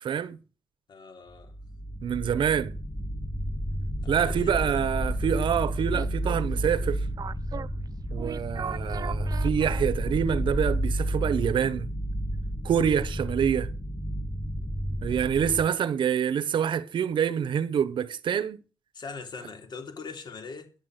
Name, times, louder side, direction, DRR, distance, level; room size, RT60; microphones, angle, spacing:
voice 1, 0.0-0.4 2.0-2.8 4.1-7.0 8.1-11.9 12.6-13.7 15.0-18.6, right 8 dB, 75° right, 0.9 m, -26 dB
voice 2, 0.9-1.6 4.0-4.9 8.6-9.7 18.9-20.7, left 4 dB, 60° left, 3.0 m, -42 dB
sound 1, 1.3-15.6, equal, 5° left, 1.9 m, -31 dB
sound 2, 5.3-10.4, right 7 dB, 50° right, 0.6 m, -41 dB
10.5 x 7.2 x 9.4 m
wide cardioid pair, 115°, 8 cm